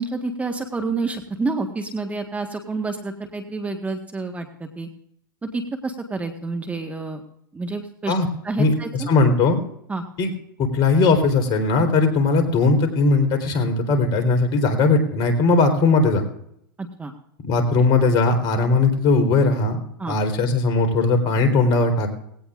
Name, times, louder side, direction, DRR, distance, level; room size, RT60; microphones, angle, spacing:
voice 1, 0.0-4.9 5.4-7.2 7.5-8.1 8.4-9.1 9.9-10.0 16.8-17.1 20.0-20.2, right 3 dB, 10° right, 5 dB, 1.5 m, -28 dB
voice 2, 8.6-9.6 10.2-10.3 10.6-16.2 17.4-22.1, left 3 dB, 40° left, 6 dB, 3.9 m, -19 dB
20.0 x 17.0 x 2.5 m, 0.72 s
hypercardioid pair, 115°, 11 cm